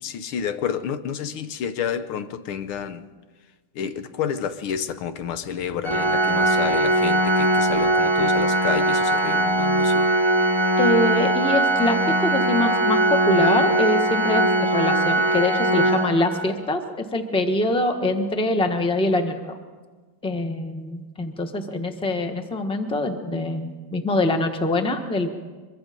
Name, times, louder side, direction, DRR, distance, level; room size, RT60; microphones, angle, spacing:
voice 1, 0.0-3.0 3.7-10.1, left 8 dB, 80° left, 1.8 m, -30 dB
Organ, 5.8-16.7, right 1 dB, 25° right, 0.6 m, -20 dB
voice 2, 10.8-13.0 13.3-19.6 20.2-25.3, left 1 dB, 5° left, 1.0 m, -24 dB
24.0 x 22.5 x 5.2 m
omnidirectional pair, 2.3 m